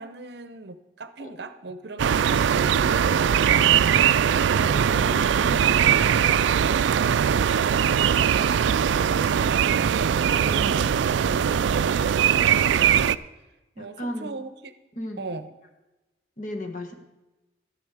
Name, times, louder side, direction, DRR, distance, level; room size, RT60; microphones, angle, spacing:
voice 1, 0.0-4.2 7.3-10.3 13.8-14.7 15.2-15.5, right 2 dB, 60° right, 12 dB, 0.7 m, -39 dB
sound 1, 2.0-13.1, right 8 dB, 80° right, 0.3 m, -21 dB
voice 2, 4.2-6.4 10.3-12.0 13.8-14.3 15.0-15.3 16.4-16.9, left 1 dB, 45° left, 4 dB, 1.3 m, -37 dB
12.5 x 11.0 x 4.9 m, 1.0 s
head